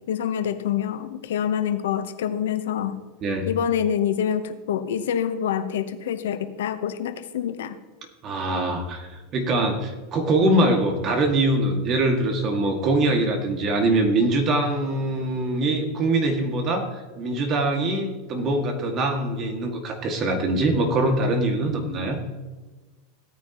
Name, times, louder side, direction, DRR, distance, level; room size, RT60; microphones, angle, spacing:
voice 1, 0.1-3.0 3.5-7.8, left 9 dB, 85° left, 10 dB, 0.9 m, -26 dB
voice 2, 8.2-22.2, right 2 dB, 35° right, 3 dB, 2.2 m, -23 dB
16.5 x 9.4 x 3.1 m, 1.2 s
supercardioid pair, 125°, 0 cm